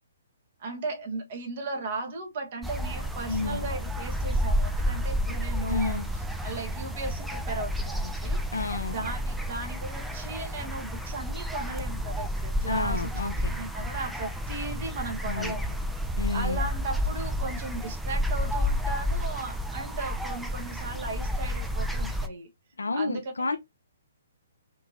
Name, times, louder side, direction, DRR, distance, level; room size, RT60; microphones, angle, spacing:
voice 1, 0.6-8.4 8.8-13.1 13.5-15.8 16.3-22.5 22.9-23.6, right 3 dB, 45° right, 1.3 m, -36 dB
sound 1, 2.6-22.3, equal, 5° right, 0.5 m, -30 dB
voice 2, 3.3-3.7 5.7-6.1 8.5-9.0 12.6-13.5 15.2-15.5 16.2-16.6 22.8-23.6, left 3 dB, 75° left, 0.7 m, -30 dB
4.5 x 2.8 x 2.7 m
figure-of-eight pair, 130°, 0 cm